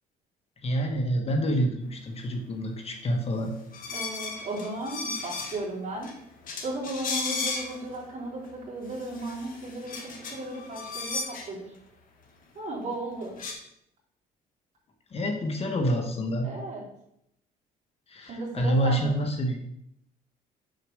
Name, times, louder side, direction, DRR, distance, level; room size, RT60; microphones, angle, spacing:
voice 1, 0.6-3.5 13.4-13.5 15.1-16.5 18.1-19.7, equal, 35° left, 4 dB, 1.2 m, -27 dB
sound 1, 3.7-5.7 6.0-6.1 6.4-8.0 8.4-8.5 8.8-11.5 12.9-13.0 13.2-13.5, left 4 dB, 55° left, 1.8 m, -35 dB
voice 2, 3.9-6.1 6.6-11.7 12.6-13.3 16.4-16.8 18.3-19.1, right 2 dB, 45° right, -5 dB, 3.6 m, -35 dB
6.6 x 4.7 x 6.4 m, 0.77 s
cardioid pair, 110°, 17 cm